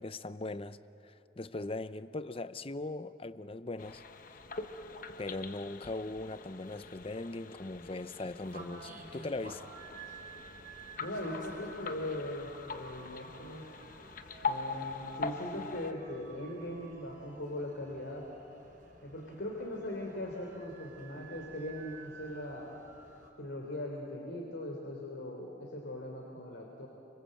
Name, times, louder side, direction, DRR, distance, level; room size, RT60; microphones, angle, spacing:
voice 1, 0.0-4.0 5.2-9.7, left 2 dB, 30° left, 0.7 m, -40 dB
sound 1, 3.8-15.9, left 4 dB, 45° left, 1.1 m, -43 dB
sound 2, 8.4-23.3, right 3 dB, 45° right, 5.4 m, -52 dB
voice 2, 11.0-13.6 14.4-18.2 19.0-22.7 23.4-26.9, left 1 dB, 80° left, 3.3 m, -40 dB
28.5 x 25.5 x 7.7 m
head